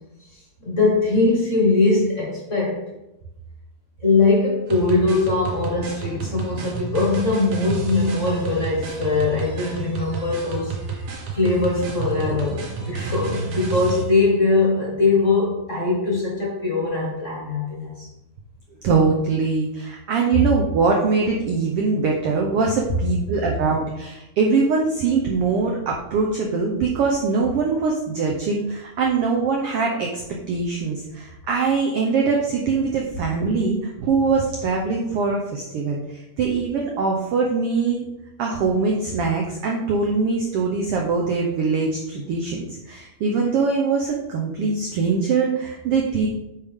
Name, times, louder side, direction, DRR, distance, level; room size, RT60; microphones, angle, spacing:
voice 1, 0.3-2.8 4.0-11.1 11.3-18.1, left 3 dB, 35° left, -4 dB, 1.3 m, -21 dB
sound 1, 4.7-14.0, right 4 dB, 70° right, 2.6 m, -30 dB
voice 2, 18.8-30.2 30.5-38.0 38.4-46.3, right 4 dB, 85° right, 0 dB, 1.2 m, -22 dB
9.0 x 5.1 x 3.6 m, 0.93 s
omnidirectional pair, 3.6 m